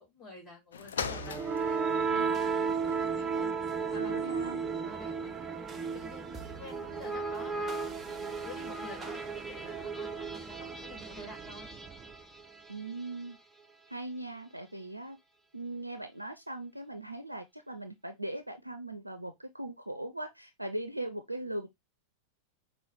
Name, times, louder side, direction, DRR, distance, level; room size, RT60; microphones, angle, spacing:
voice 1, 0.0-3.5 3.9-5.6 5.9-11.7, left 2 dB, 20° left, 2.6 m, -50 dB
sound 1, 0.7-10.3 10.9-11.0, left 7 dB, 65° left, 0.5 m, -46 dB
sound 2, 1.0-12.9, right 5 dB, 20° right, 0.5 m, -34 dB
voice 2, 3.9-4.6 12.7-13.4 13.9-15.2 15.5-21.7, right 1 dB, 85° right, 0.4 m, -39 dB
5.5 x 2.6 x 3.2 m
figure-of-eight pair, 90°, 0 cm